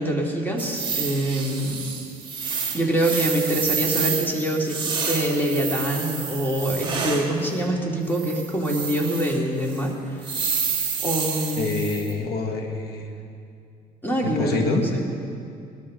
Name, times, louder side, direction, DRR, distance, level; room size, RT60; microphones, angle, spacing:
voice 1, 0.0-1.8 2.7-10.4 11.0-11.7 14.0-15.1, right 1 dB, 10° left, -1 dB, 2.5 m, -25 dB
sound 1, 0.6-7.3 8.1-9.4 9.7-9.8 10.2-12.1, right 6 dB, 30° right, 2.0 m, -29 dB
voice 2, 11.6-13.1 14.2-14.9, left 3 dB, 70° left, 3 dB, 1.9 m, -26 dB
20.0 x 13.0 x 3.8 m, 2.4 s
cardioid pair, 110°, 17 cm